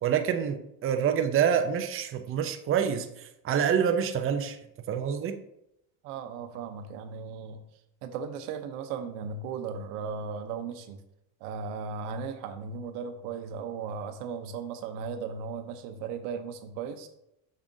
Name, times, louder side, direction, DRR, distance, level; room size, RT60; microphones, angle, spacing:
voice 1, 0.0-4.6 4.9-5.4, right 8 dB, 30° right, 0.6 m, -27 dB
voice 2, 6.0-7.6 8.0-11.0 11.4-17.1, right 5 dB, 85° right, 0.9 m, -36 dB
7.1 x 6.5 x 2.7 m
supercardioid pair, 100°, 45 cm